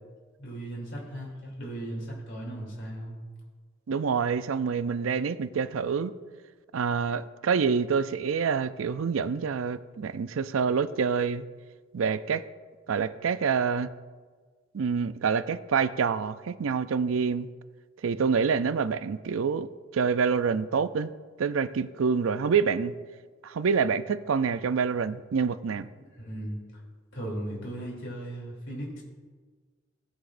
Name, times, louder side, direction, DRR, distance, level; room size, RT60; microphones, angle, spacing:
voice 1, 0.4-3.2 26.1-26.6 27.1-29.0, right 1 dB, 65° left, -3 dB, 3.0 m, -37 dB
voice 2, 3.9-6.1 6.7-11.5 11.9-12.4 12.9-13.9 14.7-17.5 18.0-19.7 19.9-21.1 21.4-23.0 23.4-25.9, right 6 dB, 85° right, 13 dB, 0.4 m, -27 dB
18.5 x 6.1 x 2.6 m, 1.5 s
head